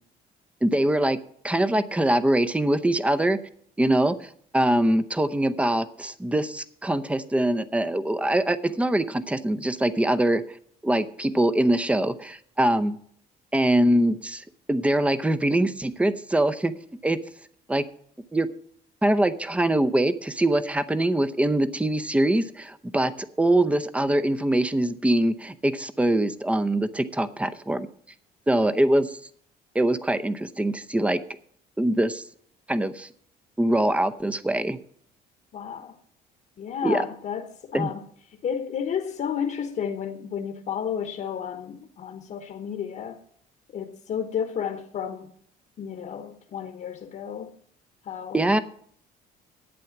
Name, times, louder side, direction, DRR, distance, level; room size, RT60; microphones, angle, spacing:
voice 1, 0.6-1.2 1.4-3.4 3.8-10.6 10.8-13.0 13.5-16.7 17.0-17.2 17.7-17.9 18.3-18.5 19.0-27.9 28.5-29.2 29.7-31.2 31.8-32.2 32.7-33.1 33.6-34.8 36.8-37.1 37.7-37.9 48.3-48.6, right 1 dB, 5° right, 0.7 m, -23 dB
voice 2, 35.5-36.0 36.6-38.0 38.3-43.2 43.7-45.3 45.8-47.5 48.0-48.5, left 8 dB, 50° left, 1.2 m, -32 dB
11.0 x 8.5 x 5.9 m
cardioid pair, 110°, 17 cm